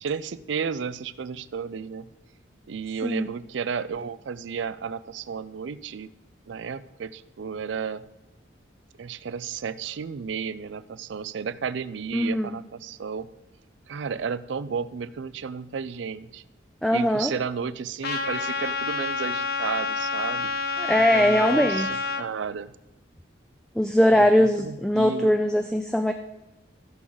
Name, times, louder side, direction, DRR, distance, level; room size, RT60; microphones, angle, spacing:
voice 1, 0.0-2.1 2.7-6.1 6.5-8.0 9.0-13.3 13.9-16.4 16.9-20.5 21.1-21.9 22.2-22.7 24.1-25.3, right 6 dB, 75° right, 16 dB, 0.4 m, -32 dB
voice 2, 12.1-12.6 16.8-17.3 20.8-21.9 23.8-26.1, left 1 dB, 5° left, 6 dB, 0.3 m, -21 dB
Trumpet, 18.0-22.2, left 4 dB, 55° left, 0.7 m, -28 dB
15.0 x 6.3 x 3.9 m, 1.0 s
head